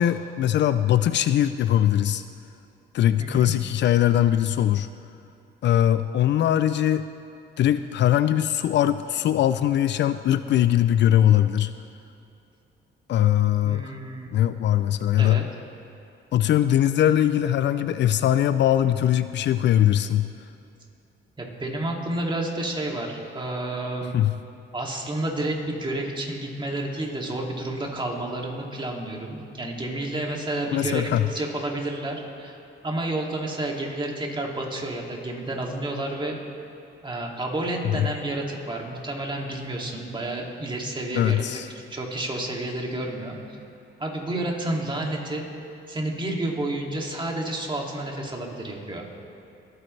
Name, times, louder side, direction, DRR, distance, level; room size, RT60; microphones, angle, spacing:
voice 1, 0.0-2.2 2.9-4.9 5.6-7.1 7.6-11.7 13.1-13.9 14.3-15.4 16.3-20.3 24.1-24.3 30.7-31.3 37.9-38.1 41.1-41.7, left 11 dB, 65° left, 12 dB, 0.4 m, -21 dB
voice 2, 3.2-3.5 13.6-14.3 15.2-15.4 21.4-24.2 24.7-32.6 32.8-36.4 37.0-41.6 41.9-43.6 44.0-45.5 45.9-49.1, right 1 dB, 25° right, -1 dB, 2.5 m, -30 dB
26.0 x 9.4 x 3.3 m, 2.7 s
cardioid pair, 90°, 20 cm